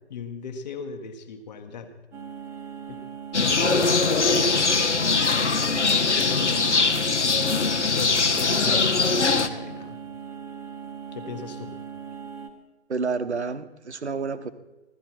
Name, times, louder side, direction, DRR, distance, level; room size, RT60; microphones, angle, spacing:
voice 1, 0.1-1.9 2.9-3.0 3.4-5.6 6.2-7.4 8.0-10.0 11.1-11.7, left 4 dB, 40° left, 5 dB, 1.3 m, -37 dB
sound 1, 2.1-12.5, right 7 dB, 10° right, 0.9 m, -39 dB
sound 2, 3.3-9.5, left 4 dB, 80° left, 1.0 m, -22 dB
voice 2, 12.9-14.5, right 4 dB, 70° right, 12 dB, 1.0 m, -29 dB
16.0 x 13.0 x 4.4 m, 1.1 s
figure-of-eight pair, 135°, 34 cm